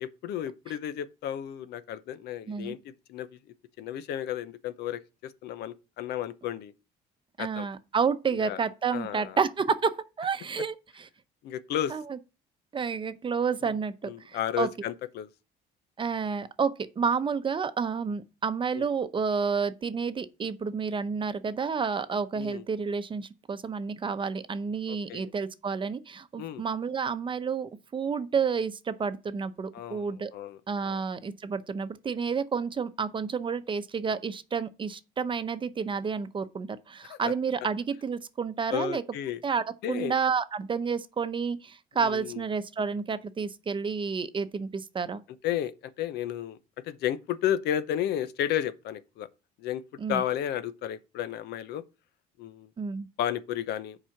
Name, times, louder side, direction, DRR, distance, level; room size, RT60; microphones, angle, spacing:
voice 1, 0.0-3.4 3.8-6.7 7.4-7.7 8.4-8.6 8.9-9.4 11.4-12.0 14.0-15.3 18.7-18.9 22.4-22.6 24.9-25.3 26.4-26.6 29.7-30.6 30.8-31.0 37.1-37.3 38.7-39.4 39.8-40.1 41.9-42.4 45.4-46.6 46.8-49.3 49.6-49.8 50.1-51.8 52.4-52.7 53.2-54.0, left 11 dB, 80° left, 0.7 m, -33 dB
voice 2, 7.4-9.9 10.2-11.1 11.9-12.2 12.7-14.7 16.0-30.3 30.7-39.0 39.4-45.2 50.0-50.2 52.8-53.1, right 5 dB, 30° right, 0.7 m, -30 dB
7.4 x 4.9 x 5.8 m
cardioid pair, 110°, 17 cm